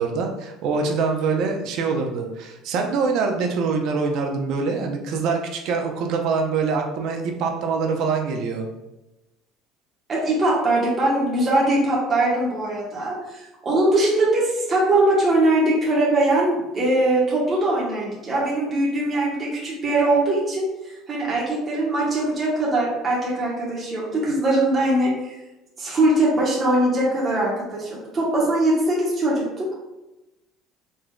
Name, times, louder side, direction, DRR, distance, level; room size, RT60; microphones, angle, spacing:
voice 1, 0.0-8.7, right 4 dB, 60° right, 3 dB, 0.7 m, -24 dB
voice 2, 10.1-25.1 25.8-29.8, right 1 dB, 25° right, -5 dB, 1.2 m, -21 dB
4.0 x 3.7 x 2.3 m, 0.99 s
cardioid pair, 130°, 0 cm